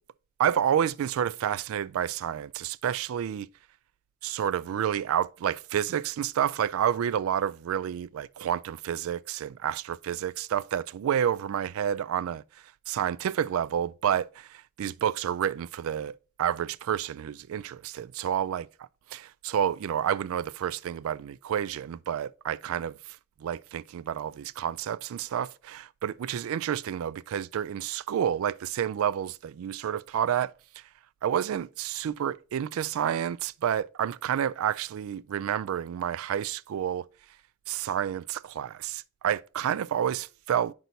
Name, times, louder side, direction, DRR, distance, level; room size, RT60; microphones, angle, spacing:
voice 1, 0.4-3.5 4.2-12.4 12.9-18.7 19.1-22.9 23.4-30.5 31.2-37.1 37.7-40.7, right 9 dB, 80° right, 0.3 m, -29 dB
9.2 x 6.0 x 2.7 m
head